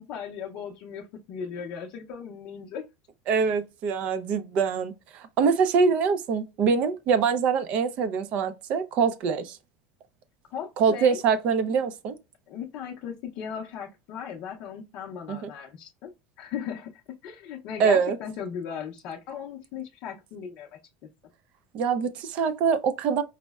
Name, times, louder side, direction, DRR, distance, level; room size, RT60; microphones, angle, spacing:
voice 1, 0.0-2.9 10.5-11.2 12.5-16.1 16.4-16.9 17.2-20.7, left 7 dB, 40° left, 0.6 m, -37 dB
voice 2, 3.3-9.6 10.8-12.2 15.3-15.5 17.8-18.2 21.7-23.2, right 6 dB, 35° right, 0.4 m, -24 dB
5.2 x 2.0 x 2.3 m
cardioid pair, 175°, 4 cm